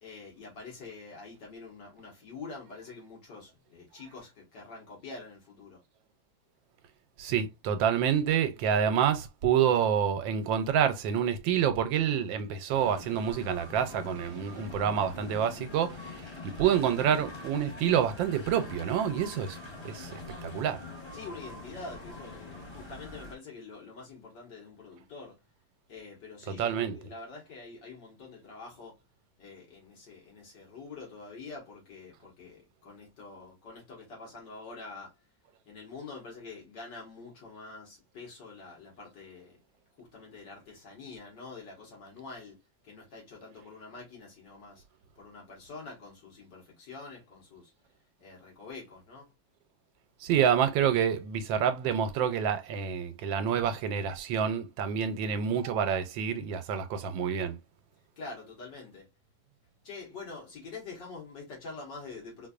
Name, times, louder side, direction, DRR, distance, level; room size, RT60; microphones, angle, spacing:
voice 1, 0.0-5.8 21.1-25.4 25.9-29.0 29.4-35.1 35.7-39.6 40.0-44.8 45.2-47.7 48.2-49.3 58.2-59.1 59.8-62.5, left 4 dB, 65° left, 2.0 m, -46 dB
voice 2, 7.2-19.6 19.8-20.8 26.5-27.0 50.2-57.6, right 8 dB, 90° right, 1.4 m, -28 dB
sound 1, 12.7-23.3, left 3 dB, 20° left, 0.9 m, -44 dB
4.3 x 2.6 x 2.4 m
omnidirectional pair, 2.0 m